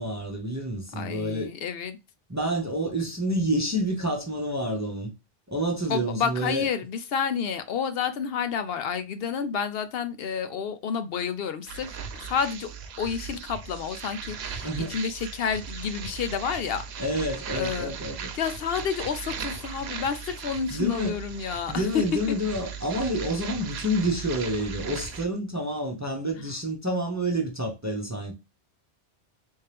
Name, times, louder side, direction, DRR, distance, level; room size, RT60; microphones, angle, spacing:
voice 1, 0.0-1.5 2.3-5.1 5.5-6.7 14.6-15.0 17.0-18.3 20.7-21.2 21.7-28.3, equal, 20° right, 0.6 m, -28 dB
voice 2, 0.9-2.0 5.9-11.9 12.2-12.7 13.0-17.0 17.6-17.9 18.3-22.0, left 7 dB, 70° left, 0.8 m, -30 dB
sound 1, 11.6-25.3, right 6 dB, 85° right, 0.9 m, -38 dB
3.5 x 2.8 x 3.2 m
omnidirectional pair, 1.1 m